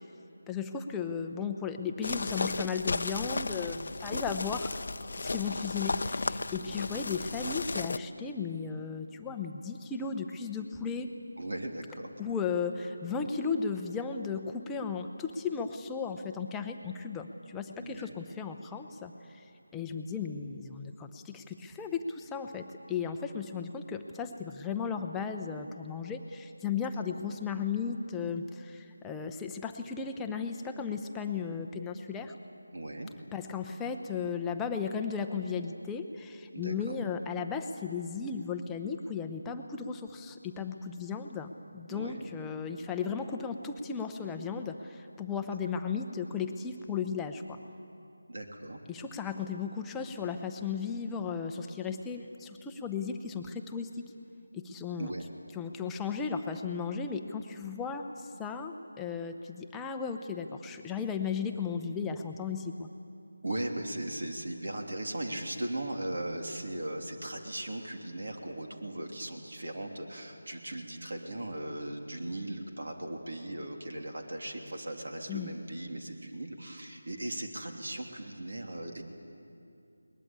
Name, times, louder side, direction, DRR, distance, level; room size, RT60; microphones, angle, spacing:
voice 1, 0.5-4.8 5.1-11.1 12.2-19.4 19.7-32.3 33.3-47.6 48.9-53.9 54.5-55.1 55.5-62.9 75.3-75.5, left 6 dB, 5° left, 4 dB, 0.8 m, -35 dB
sound 1, 2.0-8.0, left 3 dB, 50° left, 0.7 m, -34 dB
voice 2, 6.6-6.9 11.4-12.1 17.8-18.2 26.8-26.9 32.7-33.1 36.5-37.0 41.9-42.3 48.3-48.8 55.0-55.3 63.4-79.0, right 1 dB, 60° right, 2 dB, 3.1 m, -38 dB
22.0 x 20.0 x 8.8 m, 2.6 s
figure-of-eight pair, 165°, 0 cm